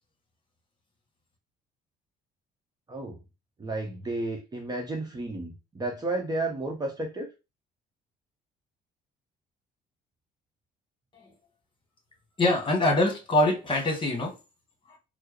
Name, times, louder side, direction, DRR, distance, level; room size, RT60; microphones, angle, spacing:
voice 1, 3.6-7.3, right 2 dB, 25° right, 0.9 m, -32 dB
voice 2, 12.4-14.3 14.9-15.0, left 2 dB, 30° left, 1.4 m, -24 dB
4.4 x 2.1 x 3.1 m
cardioid pair, 110°, 17 cm